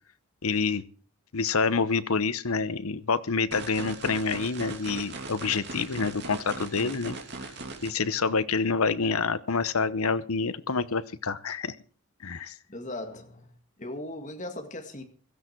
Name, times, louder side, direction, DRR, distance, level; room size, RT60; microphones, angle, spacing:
voice 1, 0.4-0.8 1.3-7.2 7.8-11.8 12.2-12.5, left 4 dB, 85° left, 0.9 m, -27 dB
sound 1, 3.5-7.9, right 3 dB, 50° right, 2.6 m, -39 dB
voice 2, 12.7-13.5 13.8-15.0, left 1 dB, 35° left, 2.1 m, -38 dB
16.5 x 14.0 x 4.6 m
head